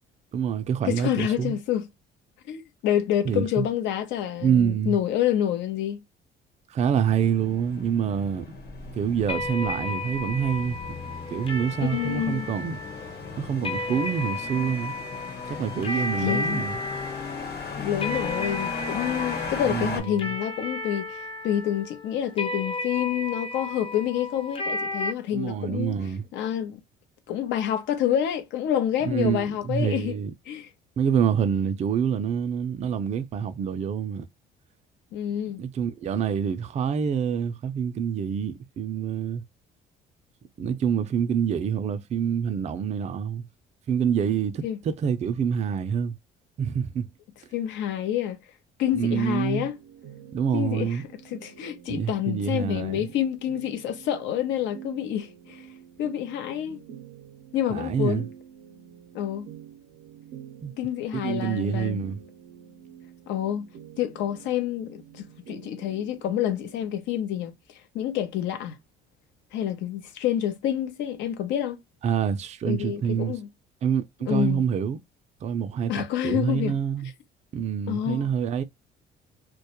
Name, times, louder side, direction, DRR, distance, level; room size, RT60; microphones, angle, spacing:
voice 1, 0.3-1.6 3.2-3.6 4.4-5.0 6.7-8.5 8.9-10.8 11.3-12.8 13.4-14.9 15.5-16.8 19.6-20.3 25.3-26.3 29.0-30.3 31.0-34.2 35.6-39.4 40.6-43.4 43.9-46.2 46.6-47.1 48.9-49.7 50.3-51.0 51.9-53.1 56.7-56.8 57.7-58.3 60.6-60.7 61.1-62.2 72.0-73.4 73.8-75.0 75.4-77.1 77.5-78.6, right 7 dB, 35° right, 0.4 m, -26 dB
voice 2, 0.8-1.9 2.5-6.0 11.8-12.5 15.5-15.6 15.9-16.6 17.8-26.0 26.3-26.8 27.3-30.2 30.5-30.7 35.1-35.6 44.6-44.8 47.5-48.4 48.8-49.7 50.5-55.7 56.0-56.8 57.5-58.3 59.1-59.5 60.8-62.0 63.3-63.7 64.0-67.5 67.9-68.8 69.5-71.8 72.7-73.5 74.3-74.6 75.9-76.7 77.9-78.3, left 10 dB, 80° left, 0.6 m, -28 dB
sound 1, 7.0-20.0, left 4 dB, 60° left, 1.1 m, -37 dB
sound 2, 9.3-25.1, left 2 dB, 30° left, 0.5 m, -33 dB
sound 3, 49.6-66.9, right 9 dB, 90° right, 0.6 m, -48 dB
2.2 x 2.0 x 2.8 m
cardioid pair, 105°, 19 cm